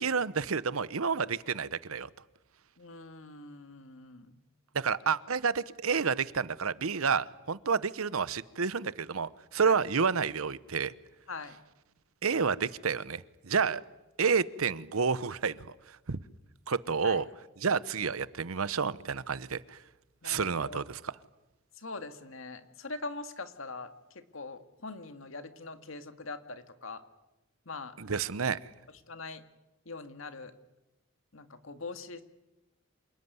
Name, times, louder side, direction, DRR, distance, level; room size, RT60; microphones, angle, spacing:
voice 1, 0.0-2.1 4.7-10.9 12.2-13.8 14.2-15.7 16.1-16.2 16.7-17.3 17.6-19.8 20.2-21.0 28.0-28.6, right 5 dB, 90° right, 17 dB, 0.9 m, -30 dB
voice 2, 2.8-4.3 9.6-9.8 11.3-11.6 17.0-17.2 20.2-20.8 21.8-27.0 27.7-27.9 29.1-29.4 29.9-30.5 31.3-32.2, left 3 dB, 75° left, 9 dB, 1.9 m, -42 dB
27.5 x 19.5 x 9.6 m, 0.99 s
head